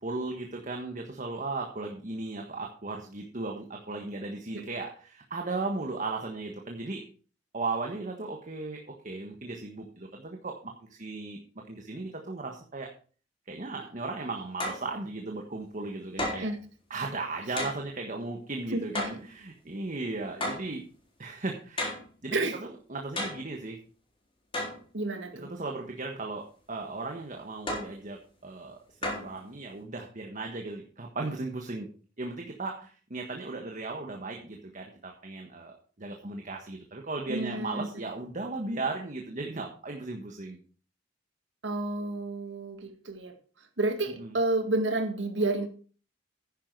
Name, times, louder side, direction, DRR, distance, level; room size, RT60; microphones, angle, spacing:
voice 1, 0.0-7.0 7.5-11.4 11.7-12.9 13.5-16.5 16.9-20.8 21.2-22.4 22.9-23.8 25.4-31.9 32.2-40.6 44.2-44.3, right 3 dB, 45° right, 2 dB, 1.5 m, -36 dB
sound 1, 14.6-14.9 16.2-16.6 17.6-17.8 19.0-19.3 20.4-20.7 21.8-22.1 23.2-23.5 24.5-24.8 27.7-28.0 29.0-29.4, left 1 dB, 30° left, 4.8 m, -33 dB
voice 2, 24.9-25.5 37.3-37.9 41.6-43.3 43.8-45.7, right 2 dB, 75° right, 6 dB, 2.0 m, -30 dB
10.5 x 10.0 x 4.7 m, 0.39 s
head